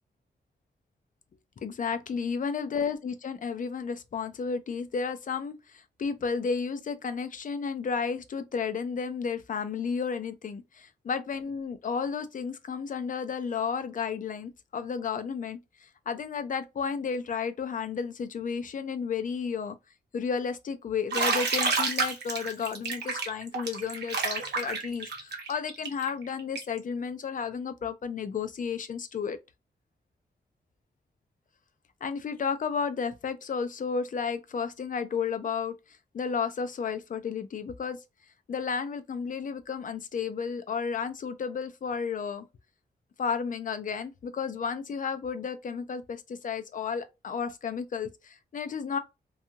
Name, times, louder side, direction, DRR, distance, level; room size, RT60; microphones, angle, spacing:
voice 1, 1.6-19.8 20.1-29.4 32.0-35.7 36.1-38.0 38.5-42.5 43.2-49.0, left 6 dB, 50° left, 0.4 m, -32 dB
Bathtub (filling or washing), 21.1-26.8, right 4 dB, 75° right, 0.7 m, -29 dB
2.6 x 2.3 x 2.7 m
wide cardioid pair, 125°, 17 cm